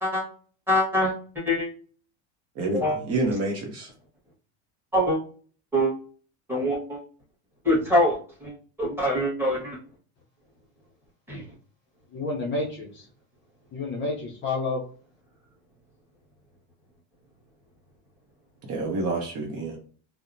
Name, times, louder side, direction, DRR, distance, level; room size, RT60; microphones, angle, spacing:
voice 1, 0.7-1.7 2.7-3.0 4.9-5.2 5.7-5.9 6.5-7.0 7.6-8.5 8.8-9.8 11.3-11.4, equal, 5° right, -5 dB, 1.2 m, -24 dB
voice 2, 2.5-3.9 18.7-19.8, right 2 dB, 40° right, 1 dB, 0.7 m, -28 dB
voice 3, 12.1-13.1 13.7-14.8, left 3 dB, 30° left, -1 dB, 0.5 m, -29 dB
2.7 x 2.1 x 2.5 m, 0.43 s
supercardioid pair, 130°, 38 cm